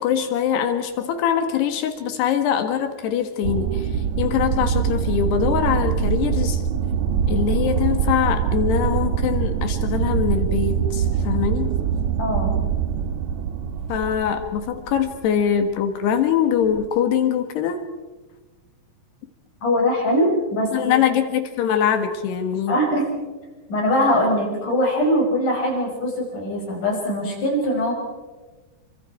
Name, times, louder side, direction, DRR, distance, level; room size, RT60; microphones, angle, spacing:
voice 1, 0.0-3.9 4.2-6.6 7.3-11.7 13.9-17.8 20.7-22.8, left 8 dB, 75° left, 6 dB, 3.9 m, -23 dB
sound 1, 3.4-15.5 16.6-16.9, right 8 dB, 75° right, 1.8 m, -23 dB
voice 2, 12.2-12.5 19.6-21.0 22.7-23.1 23.7-27.9, equal, 50° left, -1 dB, 7.1 m, -22 dB
28.5 x 25.0 x 4.6 m, 1.2 s
omnidirectional pair, 4.8 m